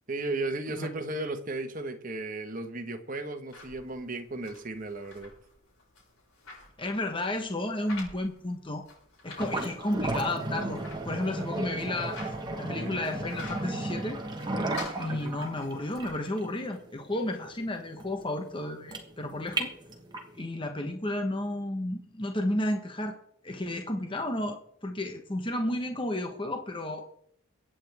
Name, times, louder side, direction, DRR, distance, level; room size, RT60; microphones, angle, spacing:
voice 1, 0.1-5.3 12.7-12.9 15.1-15.3, right 2 dB, 40° right, 6 dB, 1.4 m, -35 dB
sound 1, 3.5-16.3, left 3 dB, 80° left, 6.3 m, -50 dB
voice 2, 6.8-8.8 9.2-10.8 11.0-12.2 12.6-14.2 15.0-19.7 20.3-23.1 23.4-27.0, left 1 dB, 25° left, 4 dB, 1.2 m, -32 dB
sound 2, 9.4-20.4, right 2 dB, 20° right, 1.5 m, -35 dB
23.5 x 9.0 x 3.6 m, 0.69 s
head